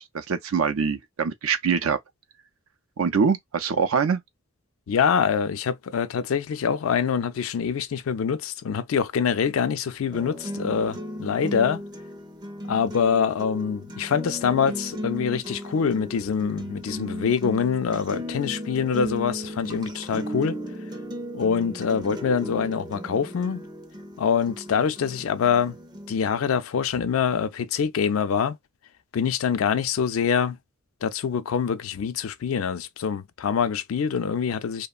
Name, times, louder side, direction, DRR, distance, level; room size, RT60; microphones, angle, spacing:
voice 1, 0.0-2.0 3.0-4.2, right 6 dB, 80° right, 0.5 m, -24 dB
voice 2, 4.9-11.8 12.7-20.6 21.3-23.6 24.2-25.8 26.1-28.6 29.1-30.6 31.0-34.9, left 7 dB, 80° left, 0.4 m, -25 dB
sound 1, 10.1-26.1, equal, 20° right, 0.4 m, -36 dB
3.0 x 2.1 x 2.3 m
head